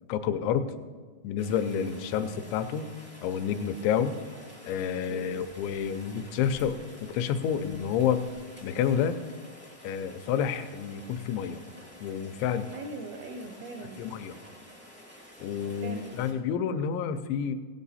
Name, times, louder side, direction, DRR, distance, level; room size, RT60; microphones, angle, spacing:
voice 1, 0.1-0.7 1.2-2.9 3.2-4.2 4.6-8.3 8.6-9.2 9.8-11.6 12.0-12.7 14.0-14.4 15.4-17.6, left 8 dB, 85° left, 9 dB, 2.9 m, -29 dB
Rain, 1.4-16.3, equal, 15° right, 0.3 m, -50 dB
voice 2, 5.1-5.5 12.7-14.0 15.8-16.2, right 3 dB, 80° right, 4 dB, 2.2 m, -41 dB
16.0 x 8.9 x 4.1 m, 1.6 s
omnidirectional pair, 5.2 m